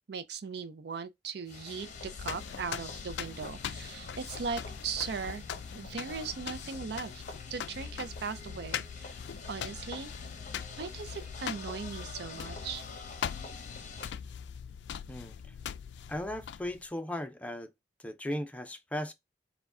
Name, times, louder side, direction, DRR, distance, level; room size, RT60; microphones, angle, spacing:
voice 1, 0.1-1.9 2.2-5.4 5.7-7.2 7.5-9.2 9.5-10.1 10.8-12.8, right 5 dB, 65° right, 0.5 m, -38 dB
sound 1, 1.5-14.1, left 4 dB, 45° left, 0.8 m, -46 dB
sound 2, 1.8-16.9, left 8 dB, 75° left, 0.3 m, -41 dB
voice 2, 16.1-17.7 18.0-19.1, left 1 dB, 10° left, 0.5 m, -36 dB
4.6 x 2.2 x 3.6 m
head